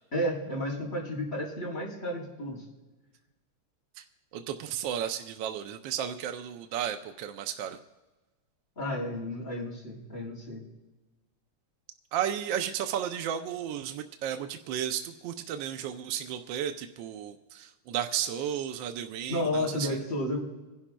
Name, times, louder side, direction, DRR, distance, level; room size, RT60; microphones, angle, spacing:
voice 1, 0.1-2.6 8.8-10.6 19.3-20.4, left 1 dB, 30° left, -5 dB, 4.0 m, -32 dB
voice 2, 4.3-7.8 12.1-19.9, right 9 dB, 75° right, 7 dB, 1.2 m, -33 dB
26.0 x 11.0 x 2.2 m, 1.2 s
omnidirectional pair, 2.2 m